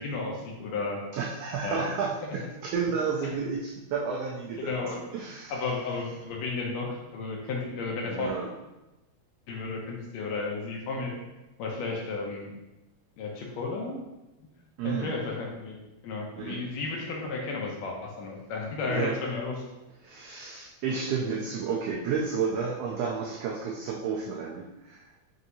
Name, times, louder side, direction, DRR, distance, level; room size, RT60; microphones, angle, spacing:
voice 1, 0.0-1.0 1.6-1.9 3.2-3.3 4.6-5.0 5.5-8.3 9.5-11.2 11.6-12.5 13.2-14.0 14.4-14.5 14.8-19.5, left 3 dB, 80° left, -1 dB, 1.7 m, -33 dB
voice 2, 1.1-4.7 5.1-5.6 8.0-8.5 14.8-15.2 16.4-16.6 18.9-19.2 20.0-25.1, right 6 dB, 85° right, -2 dB, 1.4 m, -31 dB
5.9 x 2.7 x 2.6 m, 1.0 s
omnidirectional pair, 3.3 m